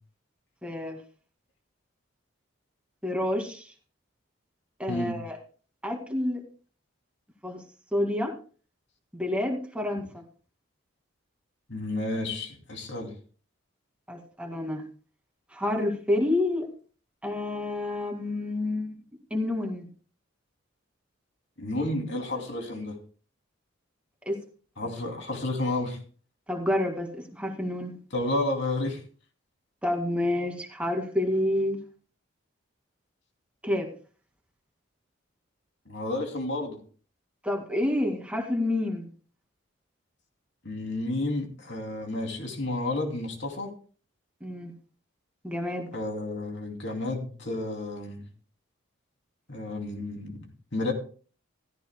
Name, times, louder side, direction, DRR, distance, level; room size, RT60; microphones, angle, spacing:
voice 1, 0.6-1.0 3.0-3.7 4.8-5.4 5.8-6.4 7.4-7.6 7.9-8.3 9.1-10.0 14.1-14.8 15.5-16.7 17.2-19.0 19.3-19.9 24.3-24.4 26.5-27.9 29.8-31.8 33.6-33.9 37.4-39.1 44.4-44.7 45.4-45.9, left 1 dB, 5° right, 2 dB, 2.1 m, -28 dB
voice 2, 11.7-13.1 21.6-22.9 24.8-26.0 28.1-29.0 35.9-36.8 40.6-43.7 45.9-48.2 49.5-50.4 50.7-50.9, left 2 dB, 60° left, 3 dB, 2.8 m, -31 dB
16.0 x 14.5 x 2.2 m, 0.40 s
head